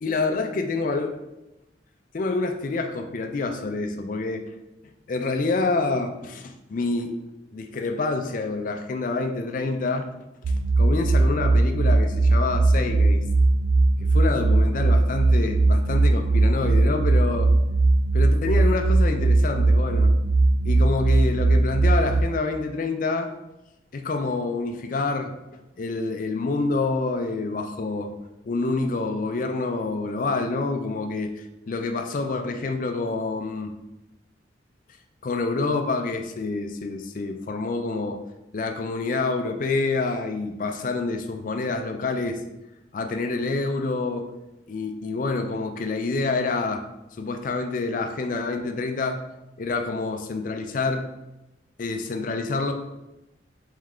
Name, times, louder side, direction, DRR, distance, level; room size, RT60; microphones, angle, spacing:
voice 1, 0.0-1.2 2.1-4.5 5.1-7.2 7.5-10.1 10.8-13.2 14.0-17.5 18.1-20.1 20.6-23.3 23.9-28.1 28.5-33.7 35.2-38.2 38.5-42.4 42.9-44.3 44.7-46.8 47.2-49.2 49.6-51.1 51.8-52.7, left 3 dB, 45° left, 6 dB, 0.4 m, -27 dB
sound 1, 10.4-22.2, right 2 dB, 85° right, 0.4 m, -19 dB
3.6 x 3.2 x 3.5 m, 0.96 s
head